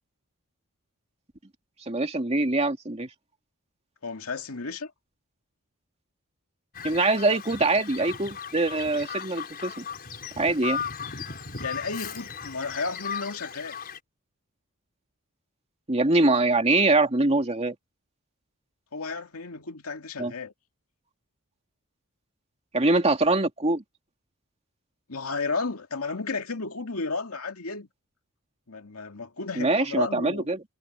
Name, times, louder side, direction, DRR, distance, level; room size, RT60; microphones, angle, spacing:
voice 1, 1.9-3.1 6.8-9.9 10.4-10.8 15.9-17.8 20.2-20.3 22.7-23.8 29.5-30.6, right 2 dB, 30° right, 2.6 m, -23 dB
voice 2, 4.0-4.9 11.6-13.8 18.9-20.5 25.1-27.9 28.7-30.5, left 4 dB, 75° left, 2.3 m, -33 dB
Bird vocalization bird call bird song, 6.7-14.0, left 7 dB, 45° left, 5.6 m, -37 dB
head